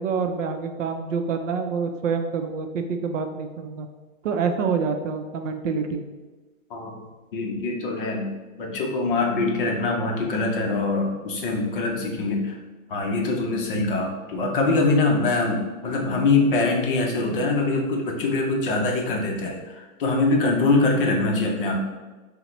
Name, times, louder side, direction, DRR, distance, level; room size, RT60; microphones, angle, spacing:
voice 1, 0.0-3.9 4.2-6.0, right 5 dB, 60° right, 6 dB, 0.5 m, -27 dB
voice 2, 7.3-12.6 12.9-21.8, left 3 dB, 40° left, 0 dB, 0.6 m, -23 dB
5.4 x 2.1 x 3.0 m, 1.2 s
hypercardioid pair, 155°, 43 cm